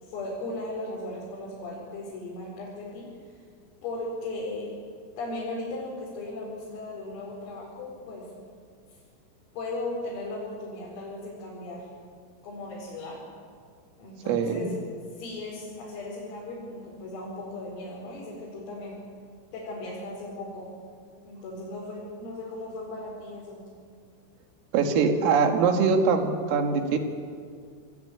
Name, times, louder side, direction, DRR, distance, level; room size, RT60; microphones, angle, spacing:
voice 1, 0.0-3.1 3.8-4.7 5.2-8.3 9.5-11.9 12.4-13.3 14.0-14.8 15.1-19.1 19.5-20.7 21.3-23.7, left 2 dB, 85° left, -5 dB, 7.5 m, -37 dB
voice 2, 14.3-14.7 24.7-27.0, right 5 dB, 80° right, 5 dB, 4.7 m, -23 dB
28.0 x 19.5 x 8.9 m, 2.1 s
omnidirectional pair, 5.9 m